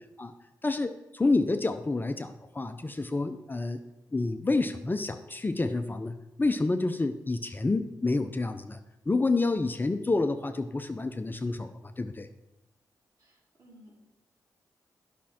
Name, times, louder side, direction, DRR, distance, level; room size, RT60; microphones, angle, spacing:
voice 1, 0.6-3.8 4.1-8.8 9.1-12.3, left 3 dB, 25° left, 7 dB, 0.7 m, -29 dB
voice 2, 13.2-13.9, equal, 55° right, -4 dB, 3.5 m, -56 dB
10.0 x 6.1 x 4.4 m, 0.96 s
cardioid pair, 55°, 7 cm